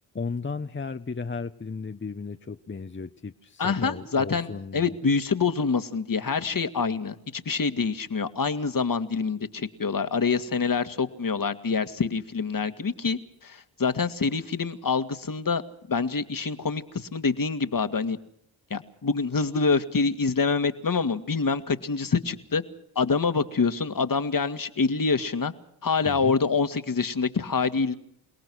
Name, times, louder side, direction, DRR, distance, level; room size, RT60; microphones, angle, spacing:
voice 1, 0.1-5.0 26.0-26.4, left 4 dB, 25° left, 8 dB, 1.1 m, -35 dB
voice 2, 3.6-15.6 15.9-18.2 18.7-22.6 23.0-25.5 25.8-27.9, left 4 dB, 45° left, 10 dB, 2.0 m, -26 dB
28.5 x 18.0 x 6.3 m, 0.71 s
supercardioid pair, 45°, 47 cm